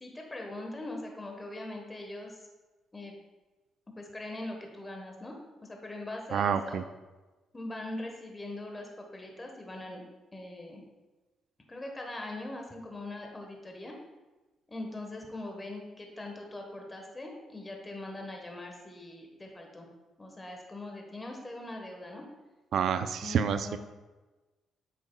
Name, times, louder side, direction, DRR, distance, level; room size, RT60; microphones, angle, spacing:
voice 1, 0.0-2.4 2.9-3.1 4.0-5.3 5.6-6.8 7.5-10.0 10.3-10.8 11.7-13.9 14.7-19.9 20.2-22.2 23.2-23.8, left 2 dB, 20° left, 1 dB, 1.2 m, -41 dB
voice 2, 6.3-6.8 22.7-23.8, right 7 dB, 65° right, 10 dB, 0.3 m, -28 dB
8.3 x 5.9 x 2.3 m, 1.2 s
cardioid pair, 90°, 0 cm